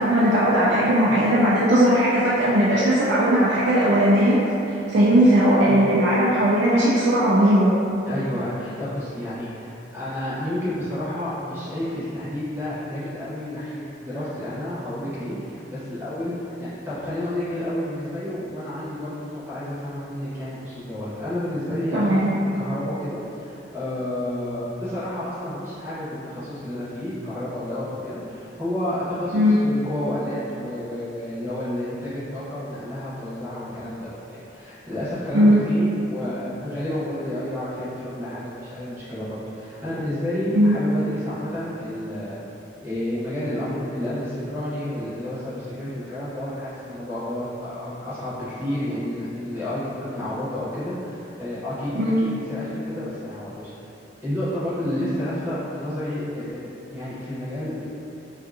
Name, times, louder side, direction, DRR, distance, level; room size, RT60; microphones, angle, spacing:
voice 1, 0.0-4.4 4.9-7.8 21.9-22.3 29.3-29.6 35.3-35.6 40.5-40.8 52.0-52.2, equal, 70° right, -8 dB, 0.3 m, -18 dB
voice 2, 8.1-22.3 22.5-42.4 42.8-53.7 54.2-57.8, left 1 dB, 15° right, -12 dB, 0.8 m, -30 dB
2.6 x 2.4 x 2.4 m, 2.9 s
head